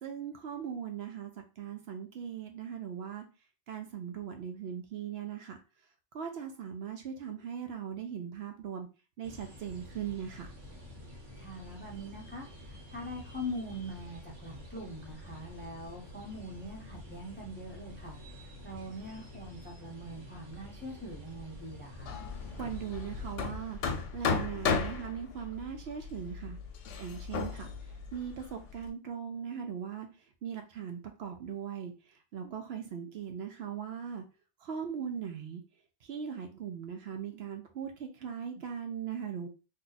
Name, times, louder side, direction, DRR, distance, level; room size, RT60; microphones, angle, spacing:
voice 1, 0.0-3.2 3.7-5.6 6.1-8.9 9.2-10.5 22.5-23.8 24.1-26.6 27.0-27.7 28.1-30.1 30.4-31.9 32.3-34.2 34.6-35.6 36.0-39.5, right 8 dB, 65° right, 4 dB, 0.7 m, -39 dB
sound 1, 9.2-23.4, left 1 dB, 85° right, 1.4 m, -49 dB
voice 2, 11.4-22.2, equal, 10° left, -1 dB, 0.7 m, -43 dB
Hammer, 22.0-28.9, left 5 dB, 85° left, 0.9 m, -35 dB
2.7 x 2.3 x 3.9 m, 0.32 s
omnidirectional pair, 1.2 m